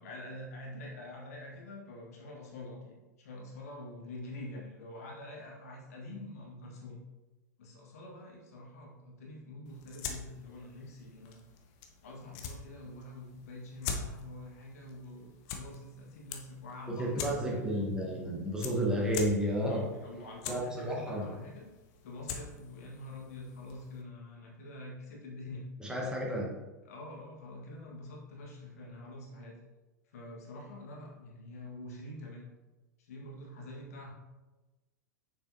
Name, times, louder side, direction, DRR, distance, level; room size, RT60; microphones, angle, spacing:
voice 1, 0.0-7.0 7.6-11.4 12.0-17.6 19.7-21.7 22.0-25.7 26.9-29.6 30.1-32.5 33.0-34.1, left 1 dB, 60° left, -2 dB, 1.7 m, -46 dB
sound 1, 9.7-24.0, left 6 dB, 40° left, 0.8 m, -45 dB
voice 2, 16.9-19.9 20.5-21.3 25.8-26.5, equal, 10° right, -2 dB, 1.3 m, -31 dB
6.7 x 6.1 x 2.8 m, 1.1 s
figure-of-eight pair, 90°, 10 cm